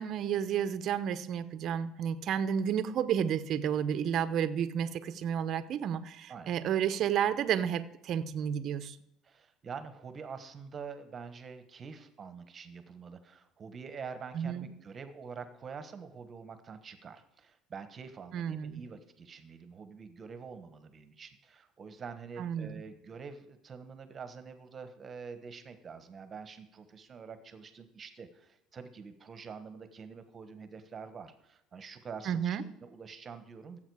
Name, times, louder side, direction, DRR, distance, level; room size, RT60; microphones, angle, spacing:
voice 1, 0.0-9.0 14.3-14.7 18.3-18.8 22.4-22.8 32.3-32.6, right 8 dB, 50° right, 12 dB, 0.7 m, -31 dB
voice 2, 9.2-33.8, right 5 dB, 30° right, 10 dB, 1.2 m, -46 dB
15.0 x 7.5 x 4.8 m, 0.84 s
cardioid pair, 135°, 0 cm